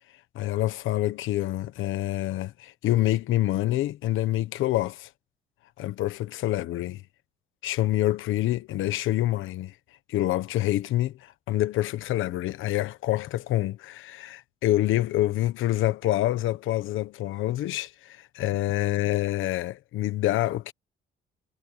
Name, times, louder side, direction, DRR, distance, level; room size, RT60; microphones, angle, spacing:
voice 1, 0.3-5.1 5.8-7.0 7.6-9.7 10.1-20.7, left 15 dB, 85° left, 1.2 m, -27 dB
cardioid pair, 90°, 20 cm